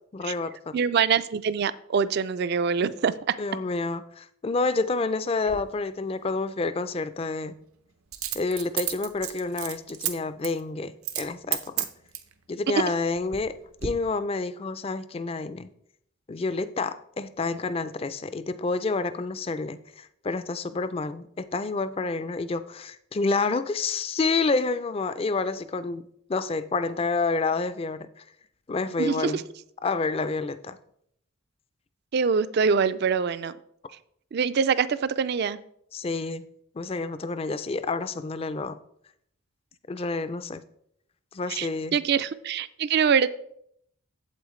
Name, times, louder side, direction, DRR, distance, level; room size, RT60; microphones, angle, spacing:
voice 1, 0.1-0.8 3.4-7.6 8.3-11.9 12.5-13.6 13.8-15.7 16.3-28.1 28.7-29.4 29.8-30.8 35.9-36.5 36.8-38.8 39.9-40.6 41.3-42.0, left 3 dB, 25° left, 13 dB, 0.3 m, -29 dB
voice 2, 0.7-3.3 29.0-29.4 32.1-33.5 34.3-35.6 41.5-43.3, right 6 dB, 50° right, 15 dB, 0.3 m, -24 dB
Coin (dropping), 5.4-5.6 8.1-10.1 10.4-10.6 11.0-11.3 11.5-12.3 12.9-13.5 13.8-13.9, right 12 dB, 85° right, 0.8 m, -31 dB
8.4 x 7.8 x 3.1 m, 0.71 s
head